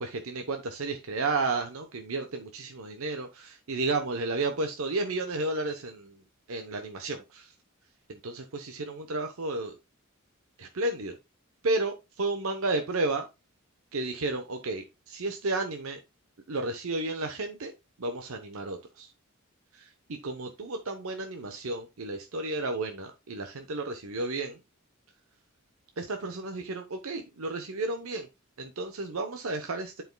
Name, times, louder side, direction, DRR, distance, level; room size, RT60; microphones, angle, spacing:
voice 1, 0.0-6.2 6.5-7.5 8.1-9.8 10.6-11.1 11.6-13.3 13.9-16.0 16.5-17.7 18.0-19.1 19.7-24.6 26.0-28.3 28.6-30.0, right 2 dB, 80° right, 0.8 m, -32 dB
11.0 x 4.8 x 2.2 m
head